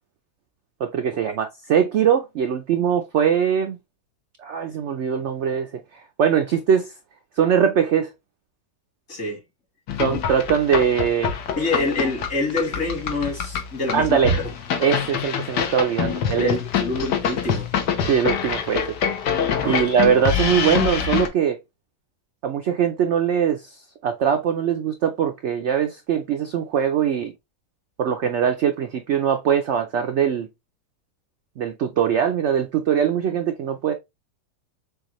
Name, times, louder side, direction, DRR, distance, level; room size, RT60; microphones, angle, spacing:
voice 1, 0.8-3.8 4.4-6.9 7.4-8.1 10.0-11.3 13.9-14.3 14.8-16.6 18.1-18.8 19.6-21.6 22.4-27.3 28.0-30.5 31.6-33.9, right 8 dB, 70° right, 0.6 m, -21 dB
voice 2, 9.1-9.4 11.6-14.4 16.4-17.7 19.6-19.8, left 3 dB, 60° left, 3.4 m, -26 dB
sound 1, 9.9-21.3, left 7 dB, 85° left, 1.5 m, -25 dB
6.7 x 2.4 x 3.0 m
omnidirectional pair, 1.8 m